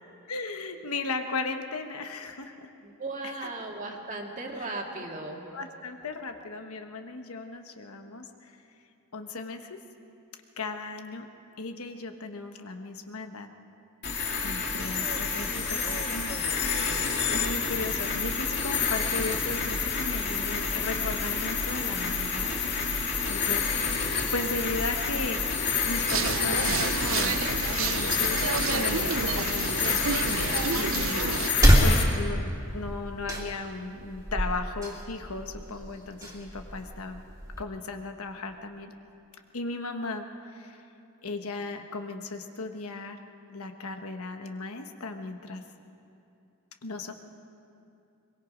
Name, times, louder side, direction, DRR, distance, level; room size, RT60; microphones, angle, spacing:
voice 1, 0.3-2.7 3.4-3.5 5.5-8.5 9.1-9.8 10.6-11.2 11.6-13.5 14.4-16.7 17.0-23.6 24.2-25.4 25.8-31.2 31.8-37.2 37.6-38.9 39.5-40.8 41.2-43.2 43.5-45.6 46.8-47.1, left 3 dB, 80° left, 6 dB, 1.2 m, -36 dB
voice 2, 2.8-5.4 14.7-15.2 15.5-16.6, right 2 dB, 35° right, 1 dB, 2.0 m, -38 dB
sound 1, 14.0-32.0, left 5 dB, 50° left, 2.3 m, -29 dB
sound 2, 26.1-31.5, right 6 dB, 65° right, 0.6 m, -30 dB
sound 3, 30.2-37.6, equal, 15° right, 2.4 m, -27 dB
22.5 x 22.0 x 5.2 m, 2.7 s
head